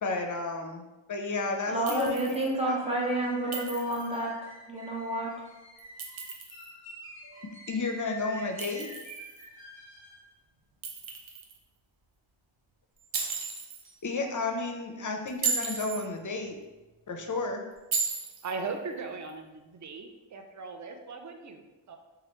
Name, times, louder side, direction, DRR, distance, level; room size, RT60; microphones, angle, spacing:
voice 1, 0.0-3.4 7.2-8.9 14.0-16.6 17.1-17.6, left 3 dB, 40° left, 4 dB, 0.5 m, -33 dB
voice 2, 1.7-4.3 4.7-5.3, right 1 dB, 15° right, -3 dB, 0.8 m, -29 dB
Chink clink, 1.9-2.5 3.5-4.2 5.8-6.7 8.6-9.5 10.8-11.6 13.1-13.8 15.3-16.1 17.9-18.6, right 5 dB, 80° right, 0.6 m, -34 dB
sound 1, 2.4-10.3, equal, 25° left, 1.1 m, -48 dB
Shatter, 13.1-14.1, right 2 dB, 55° right, 1.0 m, -46 dB
voice 3, 18.4-22.0, right 4 dB, 40° right, 5 dB, 0.4 m, -38 dB
3.1 x 2.4 x 3.0 m, 1.1 s
cardioid pair, 40°, 48 cm